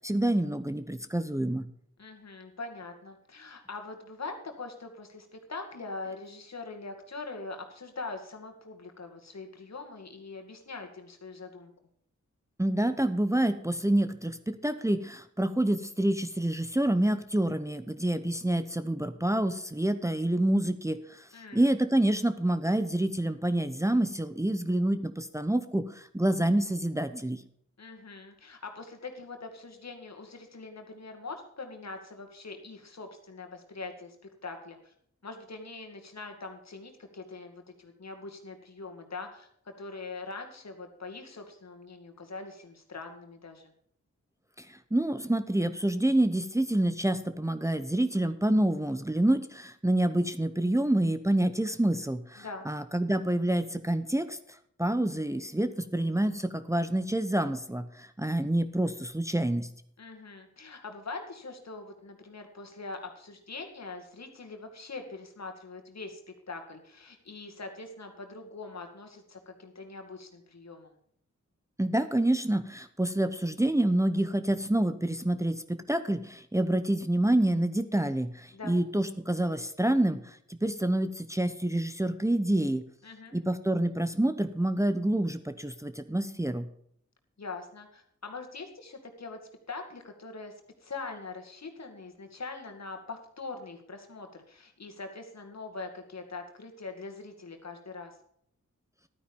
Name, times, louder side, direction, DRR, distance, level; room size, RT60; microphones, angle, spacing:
voice 1, 0.0-1.7 12.6-27.4 44.6-54.4 54.8-59.7 71.8-82.8 83.3-86.7, right 1 dB, 10° right, 9 dB, 0.9 m, -27 dB
voice 2, 2.0-11.7 21.3-21.7 27.8-34.2 34.4-34.9 35.2-43.7 52.4-52.7 60.0-66.2 66.5-70.9 78.5-78.8 83.0-83.3 87.4-89.4 89.7-90.5 90.8-98.2, left 3 dB, 60° left, 4 dB, 2.2 m, -42 dB
12.0 x 9.4 x 5.4 m, 0.67 s
cardioid pair, 45°, 30 cm